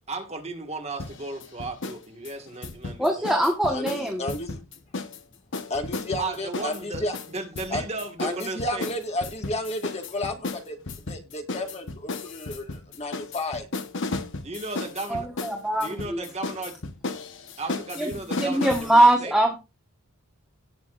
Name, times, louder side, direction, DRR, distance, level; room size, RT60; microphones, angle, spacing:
voice 1, 0.1-3.4 6.2-8.9 14.4-15.3 15.8-16.8 17.6-19.3, right 3 dB, 30° right, 1.9 m, -35 dB
sound 1, 1.0-2.0 2.2-5.2 5.5-18.9, left 3 dB, 60° left, 1.2 m, -34 dB
voice 2, 3.0-4.2 15.1-16.2 18.0-18.1 18.4-19.6, right 1 dB, ahead, 1.4 m, -22 dB
voice 3, 3.7-4.6 5.7-7.1 7.7-7.8 8.2-10.8 11.1-13.7, left 1 dB, 30° left, 1.8 m, -32 dB
17.5 x 6.9 x 2.6 m
head